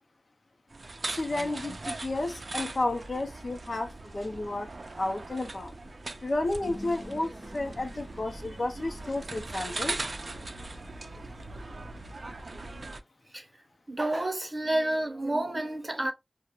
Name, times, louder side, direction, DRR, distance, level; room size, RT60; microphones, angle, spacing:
sound 1, 0.7-13.0, right 2 dB, 65° right, 0.4 m, -40 dB
voice 1, 1.1-4.7 5.0-5.7 6.2-10.0, left 2 dB, 60° left, 0.5 m, -32 dB
sound 2, 6.6-11.6, equal, 25° left, 0.7 m, -48 dB
voice 2, 13.9-16.1, right 1 dB, 35° right, 0.8 m, -29 dB
2.4 x 2.0 x 2.8 m
wide cardioid pair, 55°, 0 cm